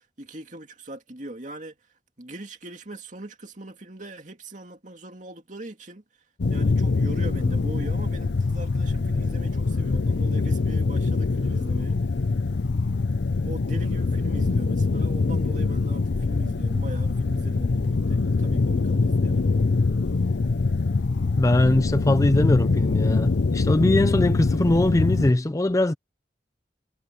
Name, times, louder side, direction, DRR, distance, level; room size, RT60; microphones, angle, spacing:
voice 1, 0.2-1.7 2.2-6.0 6.5-12.0 13.5-19.7, right 1 dB, 45° right, 2.4 m, -40 dB
sound 1, 6.4-25.3, left 3 dB, 75° left, 0.6 m, -24 dB
voice 2, 21.4-25.9, left 1 dB, 20° left, 0.4 m, -21 dB
head